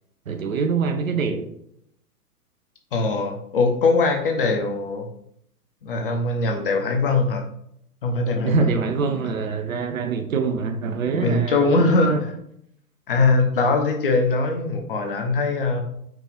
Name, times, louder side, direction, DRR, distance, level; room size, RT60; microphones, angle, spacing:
voice 1, 0.3-1.5 8.4-12.2, right 5 dB, 60° right, 8 dB, 0.6 m, -25 dB
voice 2, 2.9-5.1 5.8-7.4 8.0-8.7 11.2-12.1 13.1-15.8, left 3 dB, 35° left, 3 dB, 0.6 m, -21 dB
4.7 x 2.4 x 3.7 m, 0.73 s
figure-of-eight pair, 115°, 47 cm